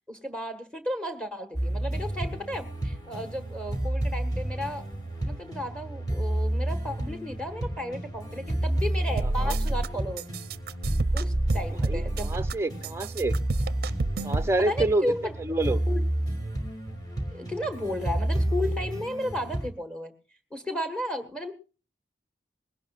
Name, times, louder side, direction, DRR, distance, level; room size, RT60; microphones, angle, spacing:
voice 1, 0.1-4.9 5.2-10.3 11.1-12.4 14.6-15.3 15.9-16.0 17.3-20.1 20.5-21.5, left 1 dB, 5° left, 7 dB, 1.5 m, -34 dB
sound 1, 1.5-19.7, right 1 dB, 20° left, 2.6 m, -31 dB
sound 2, 9.2-9.9 10.2-12.5 12.8-14.5, right 2 dB, 55° right, 0.6 m, -28 dB
voice 2, 11.8-13.3 14.2-15.1 15.4-15.8, right 2 dB, 15° right, 10 dB, 0.6 m, -27 dB
21.0 x 17.0 x 2.4 m, 0.35 s
head